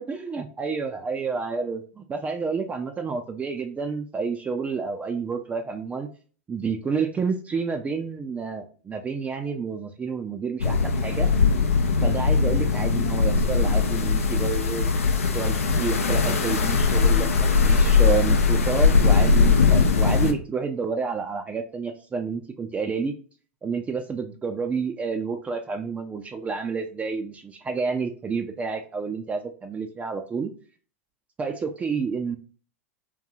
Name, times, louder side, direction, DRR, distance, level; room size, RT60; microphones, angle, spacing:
voice 1, 0.0-6.1 6.5-11.3 12.0-14.9 15.3-23.1 23.6-30.5 31.4-32.4, right 5 dB, 20° right, 5 dB, 0.4 m, -29 dB
sound 1, 10.6-20.3, left 5 dB, 80° left, 0.5 m, -20 dB
3.7 x 2.3 x 2.7 m, 0.39 s
hypercardioid pair, 95°, 8 cm